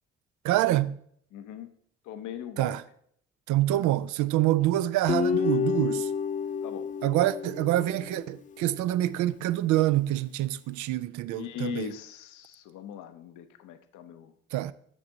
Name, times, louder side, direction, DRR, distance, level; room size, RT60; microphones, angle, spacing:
voice 1, 0.4-1.0 2.6-2.8 3.5-6.1 7.0-11.9 14.5-14.7, right 14 dB, 65° right, 0.4 m, -26 dB
voice 2, 1.3-1.7 2.0-2.8 6.6-6.9 11.3-14.3, left 11 dB, 70° left, 0.7 m, -40 dB
Guitar, 5.1-8.4, left 7 dB, 25° left, 0.4 m, -29 dB
6.2 x 6.1 x 3.9 m
hypercardioid pair, 50°, 32 cm